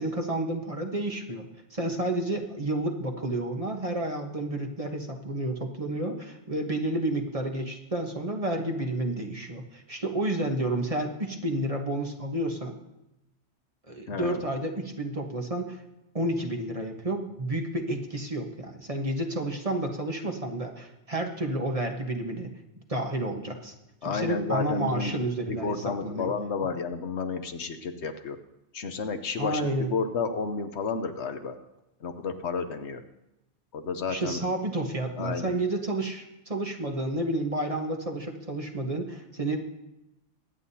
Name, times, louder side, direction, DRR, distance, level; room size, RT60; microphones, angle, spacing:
voice 1, 0.0-12.7 13.9-15.8 16.1-22.5 22.9-23.7 24.0-26.3 29.4-29.9 34.1-39.6, right 1 dB, 30° right, 2 dB, 1.2 m, -30 dB
voice 2, 14.1-14.4 24.0-25.2 25.5-28.4 28.7-29.6 29.9-31.5 32.0-33.0 33.7-34.4 35.2-35.5, left 5 dB, 70° left, 8 dB, 1.1 m, -31 dB
23.5 x 9.4 x 2.8 m, 0.90 s
omnidirectional pair, 1.2 m